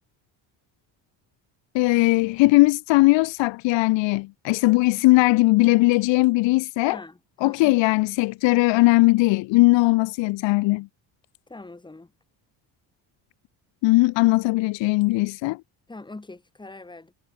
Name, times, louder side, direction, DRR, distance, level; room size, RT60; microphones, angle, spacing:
voice 1, 1.7-7.0 7.4-10.9 13.8-15.6, left 22 dB, 90° left, 0.9 m, -19 dB
voice 2, 6.9-7.9 11.5-12.1 15.9-17.1, left 2 dB, 10° left, 6.1 m, -42 dB
cardioid pair, 165°, 43 cm